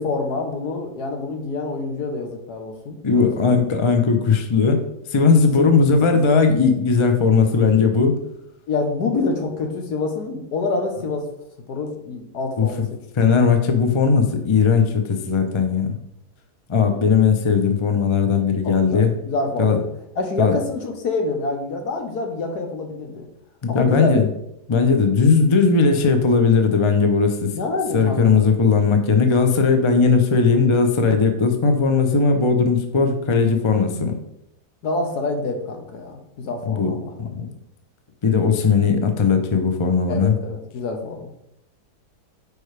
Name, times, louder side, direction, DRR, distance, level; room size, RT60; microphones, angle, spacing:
voice 1, 0.0-3.5 5.6-5.7 6.1-6.2 8.7-11.3 11.7-12.8 18.6-19.8 20.2-23.3 23.7-24.2 27.5-28.5 34.8-37.1 40.1-41.3, left 3 dB, 70° left, 3 dB, 1.6 m, -27 dB
voice 2, 3.0-4.8 5.1-8.1 12.6-12.7 13.2-15.9 16.7-19.1 19.6-19.8 20.4-20.6 23.6-24.3 24.7-27.5 27.9-34.2 36.7-36.9 37.2-37.5 38.2-40.3, left 5 dB, 40° left, 6 dB, 0.4 m, -18 dB
9.2 x 4.8 x 3.3 m, 0.80 s
omnidirectional pair, 1.8 m